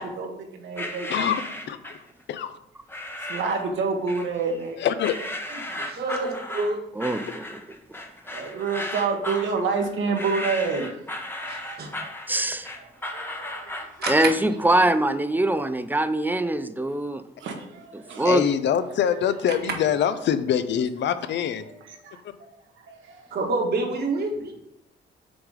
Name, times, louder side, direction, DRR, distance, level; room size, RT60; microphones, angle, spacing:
voice 1, 0.0-1.3 3.2-4.8 8.3-10.9 11.4-12.1 13.1-13.7 17.4-18.3 21.9-22.2 22.9-23.2, right 4 dB, 75° right, 3 dB, 1.3 m, -28 dB
sound 1, 0.8-2.1 2.9-3.7 4.1-4.7 5.0-14.3, left 1 dB, 10° left, 0.9 m, -35 dB
voice 2, 1.1-2.0 2.3-2.5 4.8-5.2 18.2-21.6, left 9 dB, 65° left, 12 dB, 0.6 m, -24 dB
voice 3, 5.7-6.8 11.5-11.9 14.0-14.3 23.3-24.5, right 3 dB, 55° right, 1 dB, 1.5 m, -27 dB
voice 4, 6.9-7.4 12.3-12.7 14.1-17.2 17.9-18.4, right 1 dB, 10° right, 11 dB, 0.5 m, -23 dB
6.1 x 3.8 x 4.9 m, 0.79 s
cardioid pair, 90°, 20 cm